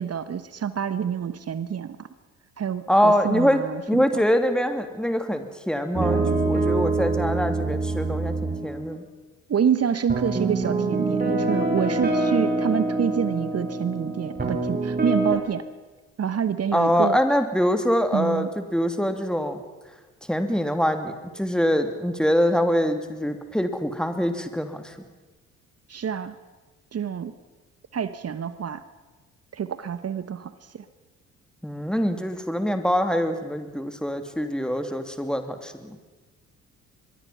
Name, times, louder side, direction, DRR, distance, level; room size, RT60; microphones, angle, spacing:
voice 1, 0.0-2.0 2.6-4.0 9.5-15.6 16.2-17.2 18.1-18.5 25.9-26.3 26.9-27.3 27.9-28.8 29.5-30.8, right 8 dB, 40° right, 13 dB, 1.3 m, -27 dB
voice 2, 2.9-9.0 16.7-19.6 20.3-25.0 31.6-36.0, equal, ahead, 7 dB, 2.9 m, -24 dB
sound 1, 5.9-9.0 10.1-15.4, right 2 dB, 25° right, 7.1 m, -25 dB
24.5 x 22.5 x 5.8 m, 1.3 s
figure-of-eight pair, 45°, 39 cm